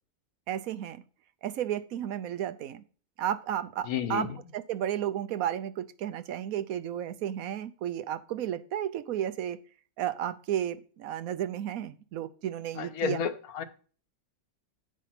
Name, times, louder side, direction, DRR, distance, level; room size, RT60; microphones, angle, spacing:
voice 1, 0.5-1.0 1.4-2.8 3.2-4.3 4.5-9.6 10.0-13.2, right 10 dB, 75° right, 11 dB, 1.1 m, -33 dB
voice 2, 3.9-4.4 12.8-13.6, left 7 dB, 80° left, 10 dB, 1.3 m, -31 dB
9.3 x 5.1 x 5.7 m, 0.40 s
omnidirectional pair, 1.5 m